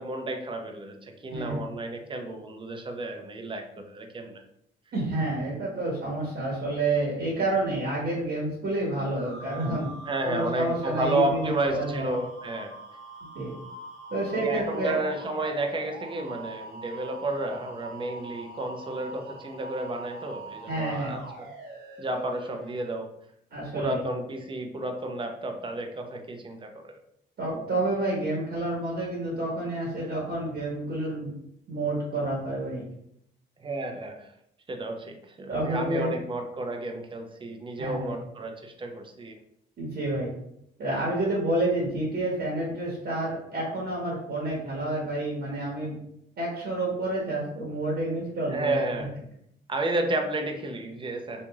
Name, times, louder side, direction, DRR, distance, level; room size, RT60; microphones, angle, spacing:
voice 1, 0.0-4.3 10.1-12.7 14.3-21.5 22.0-23.1 23.7-26.9 33.6-34.3 34.7-39.3 48.5-49.1 49.7-51.4, right 2 dB, 25° right, 4 dB, 0.6 m, -31 dB
voice 2, 4.9-9.9 10.2-12.1 13.3-13.5 14.1-15.0 20.7-21.2 23.5-24.0 27.4-31.3 31.7-32.8 35.5-36.1 37.8-38.2 39.8-40.3 40.8-46.0 46.4-48.8, right 2 dB, 55° right, -3 dB, 1.2 m, -29 dB
sound 1, 9.1-22.9, right 2 dB, 80° right, 1.1 m, -44 dB
3.0 x 2.6 x 3.5 m, 0.75 s
cardioid pair, 90°, 20 cm